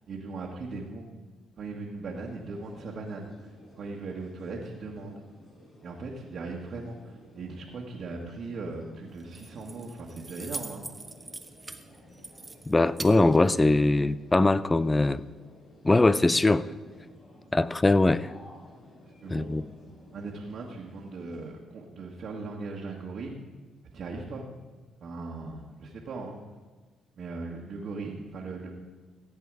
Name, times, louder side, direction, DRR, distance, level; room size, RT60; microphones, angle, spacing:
voice 1, 0.1-1.1 1.6-5.2 5.8-10.9 19.2-19.6 20.1-23.3 23.9-24.5 25.0-26.4 27.2-28.7, right 3 dB, 60° right, -3 dB, 1.6 m, -39 dB
sound 1, 2.1-21.5, equal, 45° left, 4.5 m, -54 dB
Keys jangling, 9.1-14.1, right 3 dB, 20° right, 0.8 m, -43 dB
voice 2, 12.7-15.2 15.8-16.7 17.5-18.3 19.3-19.6, left 2 dB, 20° left, 17 dB, 0.4 m, -22 dB
15.5 x 8.2 x 4.8 m, 1.4 s
cardioid pair, 90°, 0 cm